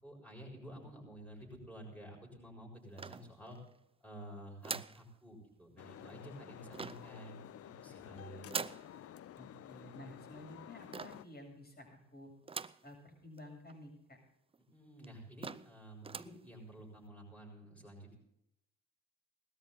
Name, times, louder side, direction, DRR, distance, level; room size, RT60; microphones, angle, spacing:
voice 1, 0.0-3.6 4.0-8.6 14.7-18.2, right 1 dB, 5° left, -2 dB, 7.0 m, -51 dB
sound 1, 3.0-3.7 4.6-5.1 6.7-7.2 8.5-8.9 10.9-11.3 12.5-12.9 13.4-13.5 13.7-13.8 14.5-14.6 15.0-15.1 15.4-15.8 16.0-16.4, right 5 dB, 20° right, 0.5 m, -42 dB
Ticket vending machine, 5.8-11.2, left 11 dB, 50° left, 0.6 m, -52 dB
voice 2, 9.4-12.3 12.8-14.2, left 1 dB, 30° left, 1 dB, 7.8 m, -52 dB
19.0 x 13.0 x 4.0 m, 0.80 s
cardioid pair, 90°, 30 cm